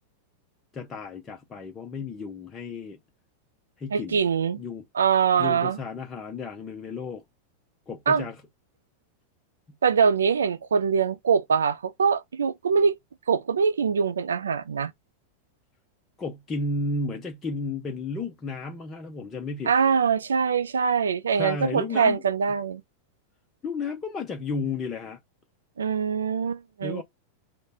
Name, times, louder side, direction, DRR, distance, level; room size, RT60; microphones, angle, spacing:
voice 1, 0.7-3.0 3.8-4.2 4.6-4.8 5.4-7.2 7.9-8.4 16.2-19.7 21.4-22.2 23.6-25.2 26.8-27.0, left 3 dB, 20° left, 0.6 m, -33 dB
voice 2, 3.9-4.6 4.9-5.8 8.1-8.2 9.8-13.0 13.3-14.9 19.7-22.8 25.8-27.0, right 6 dB, 70° right, 0.4 m, -23 dB
3.1 x 2.1 x 4.1 m
figure-of-eight pair, 90°, 0 cm